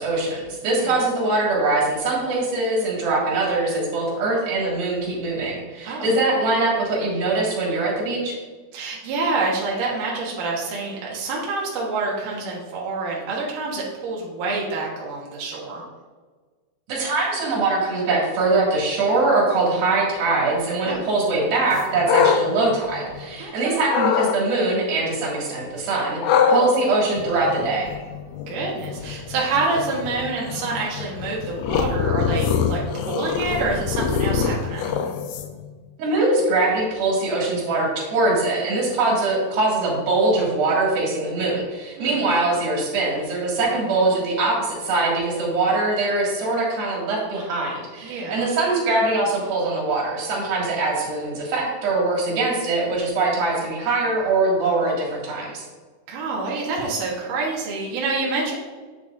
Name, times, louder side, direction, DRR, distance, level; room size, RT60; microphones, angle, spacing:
voice 1, 0.0-8.4 16.9-27.9 36.0-55.7, right 2 dB, 85° right, -4 dB, 3.7 m, -22 dB
voice 2, 0.6-1.0 5.8-6.1 8.7-15.8 20.9-21.0 23.4-23.8 28.5-34.9 42.0-42.2 48.0-48.5 56.1-58.5, right 3 dB, 70° right, -4 dB, 2.6 m, -27 dB
sound 1, 21.7-23.4 23.9-24.4 26.2-35.7, left 6 dB, 85° left, 2.4 m, -24 dB
8.6 x 6.7 x 2.5 m, 1.4 s
omnidirectional pair, 4.1 m